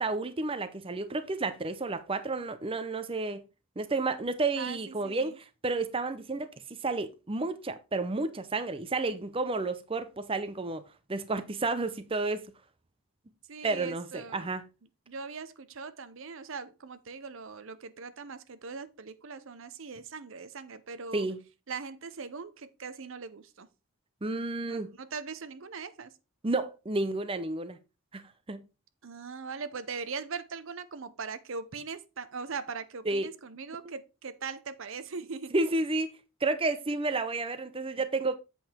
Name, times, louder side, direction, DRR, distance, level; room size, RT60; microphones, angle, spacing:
voice 1, 0.0-3.4 3.8-10.8 11.1-12.5 13.6-14.6 21.1-21.4 24.2-24.9 26.4-27.8 28.1-28.7 33.1-33.3 35.5-38.4, right 3 dB, 25° right, 0.6 m, -31 dB
voice 2, 4.6-5.4 13.5-14.5 15.1-21.3 21.7-23.7 24.7-26.2 29.0-35.5, right 5 dB, 60° right, 0.7 m, -40 dB
7.9 x 5.4 x 4.4 m
head